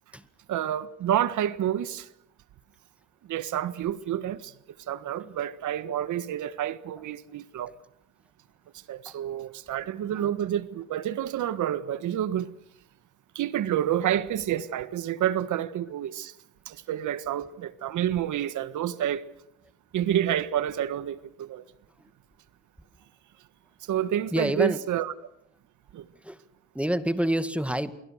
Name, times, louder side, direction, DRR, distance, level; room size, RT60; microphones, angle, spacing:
voice 1, 0.5-2.1 3.3-4.5 4.9-7.7 8.9-12.5 13.3-16.3 16.6-19.2 19.9-21.6 23.9-25.1 25.9-26.1, right 11 dB, 75° right, 1.5 m, -29 dB
voice 2, 24.3-24.8 26.2-26.4 26.7-27.9, right 1 dB, 5° right, 2.0 m, -28 dB
29.0 x 22.5 x 6.5 m
cardioid pair, 90°, 30 cm